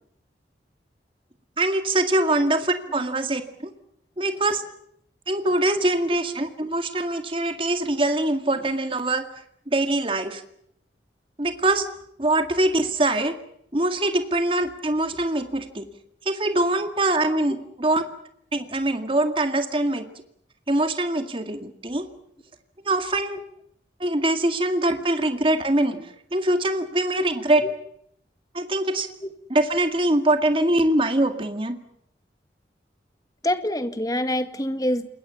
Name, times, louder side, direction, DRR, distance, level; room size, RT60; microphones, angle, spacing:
voice 1, 1.6-3.7 4.2-4.6 5.3-9.2 9.7-10.4 11.4-11.8 12.2-13.4 13.7-15.9 16.3-18.0 18.5-20.0 20.7-22.1 22.8-23.4 24.0-27.6 28.5-29.1 29.5-31.8, right 1 dB, 30° right, 8 dB, 2.0 m, -23 dB
voice 2, 33.4-35.1, left 1 dB, 20° left, 9 dB, 2.0 m, -26 dB
28.0 x 22.0 x 7.1 m, 0.71 s
head